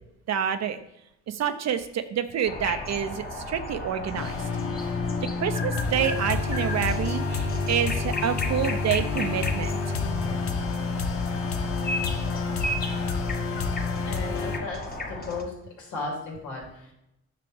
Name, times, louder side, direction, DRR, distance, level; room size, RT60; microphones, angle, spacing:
voice 1, 0.3-0.8 1.3-4.4 5.4-9.7, right 8 dB, 60° right, 9 dB, 0.7 m, -28 dB
sound 1, 2.4-15.4, left 1 dB, 30° left, 1.4 m, -35 dB
sound 2, 4.1-14.6, left 4 dB, 50° left, 1.0 m, -29 dB
voice 2, 14.0-14.8 15.1-16.9, left 3 dB, 80° left, -2 dB, 3.0 m, -35 dB
9.2 x 6.0 x 3.4 m, 0.84 s
cardioid pair, 90°, 30 cm